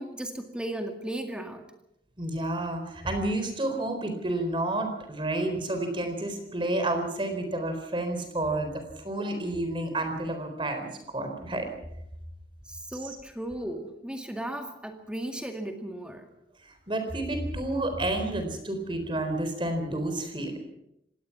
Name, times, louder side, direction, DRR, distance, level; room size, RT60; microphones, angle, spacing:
voice 1, 0.0-1.7 12.7-16.3, right 1 dB, 5° right, 5 dB, 2.0 m, -36 dB
voice 2, 2.2-11.7 13.0-13.2 16.6-20.6, right 1 dB, 30° right, 6 dB, 4.1 m, -30 dB
25.5 x 18.5 x 5.9 m, 0.79 s
head